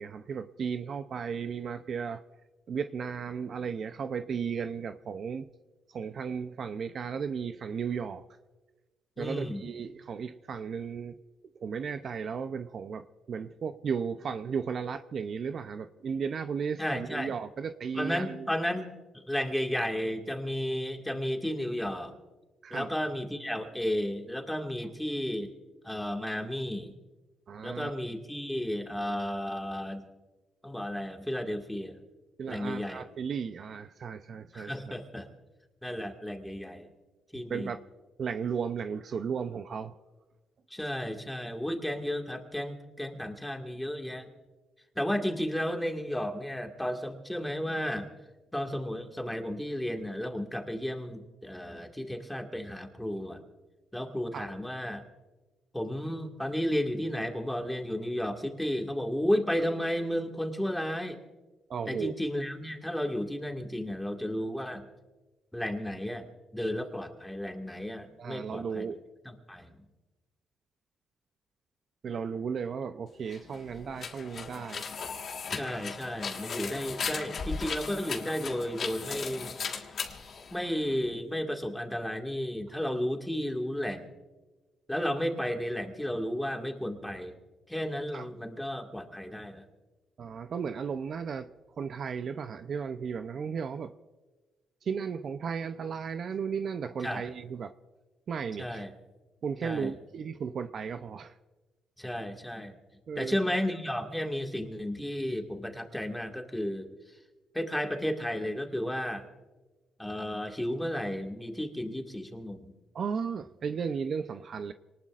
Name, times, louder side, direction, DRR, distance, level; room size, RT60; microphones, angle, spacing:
voice 1, 0.0-2.2 2.7-5.5 5.9-8.2 9.2-11.1 11.6-18.5 22.6-22.9 27.5-27.9 32.4-34.7 35.8-35.9 37.5-37.8 38.2-40.0 54.3-54.5 61.7-62.1 68.2-69.0 72.0-74.8 88.1-88.2 90.2-91.5 91.8-93.9 94.8-97.7 98.3-98.8 99.4-101.4 103.1-103.6 112.9-114.7, right 6 dB, 55° right, 9 dB, 0.6 m, -35 dB
voice 2, 9.2-9.6 16.8-17.3 17.9-22.1 22.7-25.5 25.8-26.9 27.6-30.0 30.6-32.0 32.5-33.0 34.5-35.3 35.8-36.9 37.3-37.7 40.7-44.3 45.0-48.1 48.5-53.4 53.9-55.0 55.7-61.2 61.9-64.8 65.5-68.9 69.3-69.8 75.5-79.6 79.8-80.0 80.5-84.1 84.9-87.3 87.7-89.6 97.0-97.3 98.6-98.9 99.6-99.9 102.0-102.7 103.2-107.2 107.5-109.3 110.0-112.7, equal, 5° left, 3 dB, 2.0 m, -33 dB
sound 1, 73.2-81.1, left 5 dB, 50° left, 1.6 m, -37 dB
26.5 x 19.0 x 2.5 m, 1.2 s
cardioid pair, 90°, 0 cm